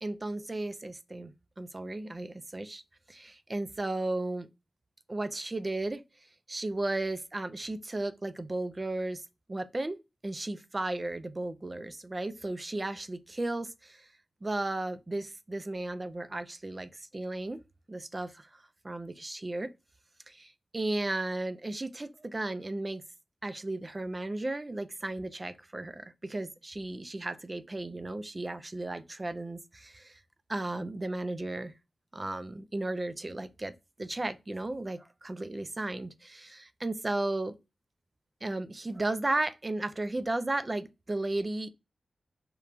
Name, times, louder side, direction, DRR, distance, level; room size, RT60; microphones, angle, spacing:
voice 1, 0.0-2.8 3.1-4.5 5.1-6.0 6.5-10.0 10.2-14.1 14.4-17.6 17.9-19.7 20.3-23.0 23.4-30.2 30.5-31.8 32.1-33.7 34.0-37.6 38.4-41.7, right 2 dB, 30° right, 0.3 m, -35 dB
3.0 x 2.4 x 2.2 m
wide cardioid pair, 85°, 0 cm